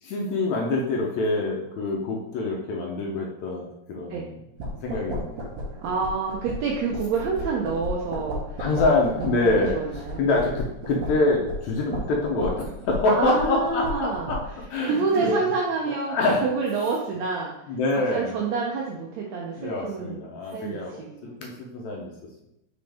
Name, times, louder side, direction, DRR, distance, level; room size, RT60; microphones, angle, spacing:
voice 1, 0.0-4.4 4.7-5.6 8.6-14.4 14.7-15.4 16.1-16.5 17.7-18.4 19.6-20.9 21.4-22.1, left 2 dB, 70° left, -1 dB, 1.8 m, -25 dB
sound 1, 4.6-14.6, left 1 dB, 60° right, 1.6 m, -34 dB
voice 2, 5.8-8.6 9.2-10.4 13.1-14.3 14.8-16.1 16.4-17.5 18.1-21.4, right 4 dB, 75° right, -1 dB, 1.6 m, -28 dB
5.7 x 5.3 x 3.4 m, 0.87 s
omnidirectional pair, 3.8 m